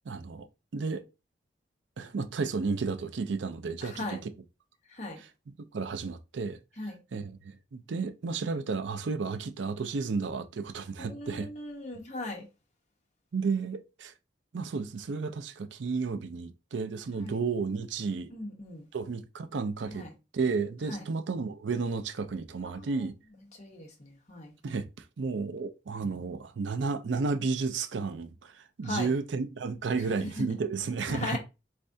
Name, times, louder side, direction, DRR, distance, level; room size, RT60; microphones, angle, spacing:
voice 1, 0.1-0.5 0.7-1.0 2.0-4.3 5.2-6.6 6.8-11.5 13.3-14.1 14.5-18.3 18.9-20.1 20.3-23.1 24.6-31.4, right 4 dB, 85° right, 0.5 m, -32 dB
voice 2, 3.8-4.2 4.9-5.2 6.8-7.0 11.0-12.4 17.2-17.3 18.3-18.8 20.0-20.1 20.9-21.0 22.6-23.0 23.6-24.5 28.8-29.1 30.2-30.4 31.1-31.4, left 2 dB, 40° left, 1.3 m, -38 dB
4.6 x 3.2 x 2.6 m
head